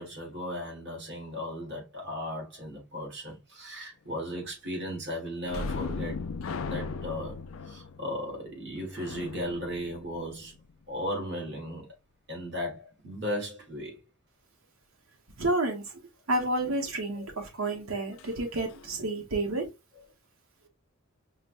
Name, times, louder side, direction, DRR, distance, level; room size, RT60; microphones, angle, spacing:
voice 1, 0.0-6.2 6.6-7.4 7.6-10.5 10.9-11.9 12.3-14.0 17.2-17.3, equal, 55° right, 1.8 m, -36 dB
sound 1, 5.4-10.8 18.2-18.3 18.7-18.9, left 4 dB, 80° left, 0.4 m, -37 dB
voice 2, 15.4-16.0 16.3-19.7, right 2 dB, 85° right, 1.0 m, -30 dB
5.1 x 2.1 x 2.5 m
head